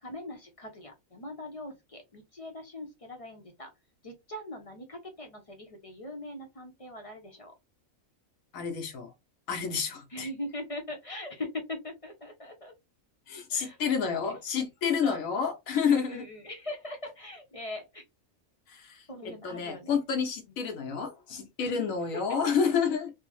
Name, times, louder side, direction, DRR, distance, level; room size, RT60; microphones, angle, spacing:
voice 1, 0.0-3.7 4.0-7.5 10.1-12.7 13.5-13.8 14.0-14.4 15.0-15.2 15.9-18.0 19.1-20.0 21.6-21.8 22.1-22.5, left 1 dB, 35° left, 0.5 m, -41 dB
voice 2, 8.5-9.1 9.5-10.3 13.3-16.2 18.7-19.0 19.4-23.1, left 6 dB, 90° left, 1.2 m, -29 dB
3.4 x 2.1 x 3.0 m
omnidirectional pair, 1.4 m